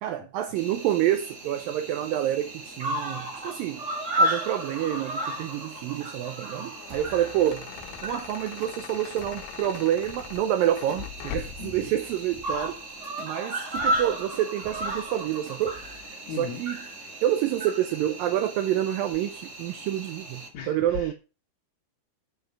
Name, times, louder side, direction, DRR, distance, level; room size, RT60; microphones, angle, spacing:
voice 1, 0.0-3.8 4.2-7.7 8.0-12.8 13.2-15.8 16.4-16.8 17.2-21.1, right 12 dB, 80° right, 2.1 m, -28 dB
Cricket, 0.5-20.5, right 1 dB, 35° right, 1.1 m, -34 dB
sound 1, 6.6-11.8, left 16 dB, 85° left, 2.6 m, -41 dB
sound 2, 6.9-16.0, right 2 dB, 60° right, 2.7 m, -50 dB
voice 2, 11.6-11.9 16.3-16.6 20.5-21.1, left 7 dB, 60° left, 2.5 m, -37 dB
7.3 x 5.5 x 5.5 m
omnidirectional pair, 4.6 m